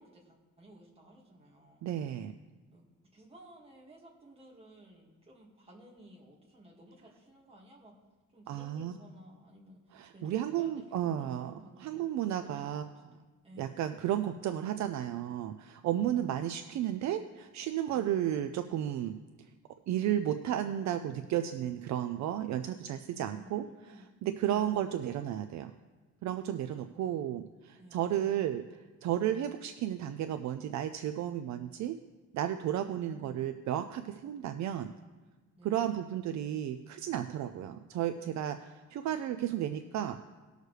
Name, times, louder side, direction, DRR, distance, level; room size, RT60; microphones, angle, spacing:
voice 1, 0.0-1.9 2.7-2.8 3.1-7.9 8.3-12.0 12.4-13.9 16.5-16.6 17.9-18.3 23.1-24.1 24.3-24.9 26.6-26.8 27.8-28.1 35.6-35.9 38.5-39.0, right 1 dB, 20° right, -2 dB, 2.0 m, -56 dB
voice 2, 1.8-2.3 8.5-8.9 9.9-11.5 11.8-12.8 13.6-19.2 19.9-25.7 26.2-31.9 32.3-34.9 35.6-40.2, right 11 dB, 60° right, 9 dB, 0.5 m, -33 dB
19.0 x 6.5 x 3.3 m, 1.3 s
cardioid pair, 170°, 32 cm